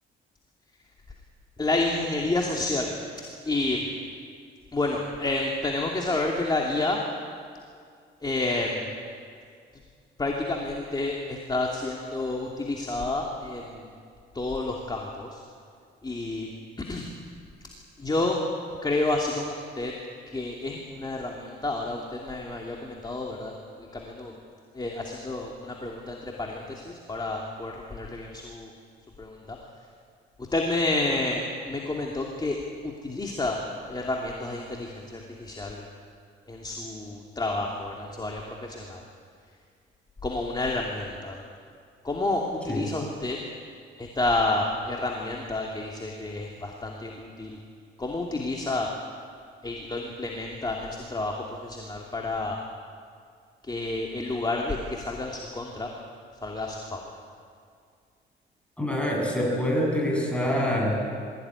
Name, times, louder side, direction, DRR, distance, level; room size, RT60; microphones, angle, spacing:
voice 1, 1.6-2.9 3.4-3.9 4.7-7.0 8.2-8.8 10.2-13.9 14.3-15.4 16.0-16.5 16.8-17.1 18.0-18.4 18.8-19.9 20.3-23.5 23.9-24.3 24.7-28.7 29.2-29.6 30.4-32.6 32.8-33.6 33.9-35.9 36.5-39.0 40.2-41.4 42.0-43.4 44.0-47.6 48.0-48.9 49.6-51.3 51.6-52.6 53.7-55.9 56.4-57.0, left 2 dB, 20° left, -1 dB, 2.8 m, -30 dB
voice 2, 58.8-61.0, equal, 5° left, -2 dB, 7.7 m, -25 dB
23.0 x 15.5 x 9.8 m, 2.2 s
cardioid pair, 90°, 20 cm